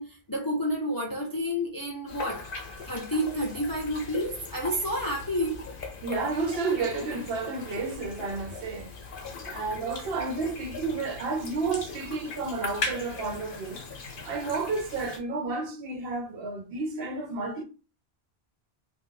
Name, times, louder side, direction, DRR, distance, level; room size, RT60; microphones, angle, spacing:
voice 1, 0.0-2.5 2.8-5.6 9.5-9.8, equal, 35° left, 0.4 m, -30 dB
sound 1, 2.1-15.2, left 3 dB, 60° left, 0.8 m, -39 dB
voice 2, 6.0-8.9 9.4-13.8 14.2-17.6, right 3 dB, 70° right, 0.7 m, -31 dB
2.3 x 2.2 x 3.7 m
omnidirectional pair, 1.1 m